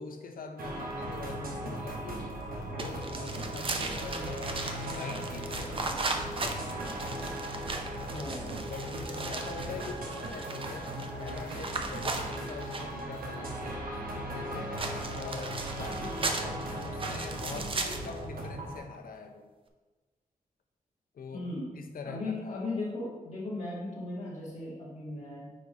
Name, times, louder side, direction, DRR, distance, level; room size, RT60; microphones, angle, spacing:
voice 1, 0.0-2.3 2.6-6.0 6.4-7.0 8.5-14.8 15.2-19.5 21.1-21.5 21.8-22.6, left 4 dB, 85° left, 5 dB, 0.7 m, -44 dB
sound 1, 0.6-18.8, right 1 dB, 85° right, 1.0 m, -38 dB
sound 2, 2.8-13.0 14.8-18.2, right 3 dB, 40° right, 0.6 m, -37 dB
voice 2, 8.1-8.6 21.3-21.7 22.0-25.5, left 2 dB, 50° left, -5 dB, 0.9 m, -37 dB
5.1 x 4.2 x 4.8 m, 1.3 s
wide cardioid pair, 155°, 15 cm